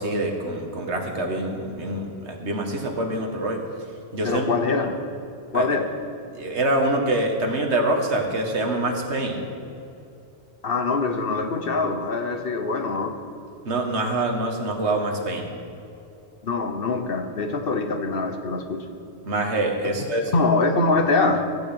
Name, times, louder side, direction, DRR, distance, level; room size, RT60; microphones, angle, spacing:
voice 1, 0.0-3.6 4.1-4.5 5.5-5.7 6.3-9.4 13.7-15.5 19.2-20.3, right 1 dB, 85° right, 2 dB, 1.9 m, -25 dB
voice 2, 4.2-5.0 5.5-5.9 10.6-13.2 16.4-18.9 19.8-19.9 20.3-21.5, left 3 dB, 60° left, 6 dB, 1.1 m, -23 dB
15.0 x 6.2 x 8.8 m, 2.7 s
omnidirectional pair, 1.1 m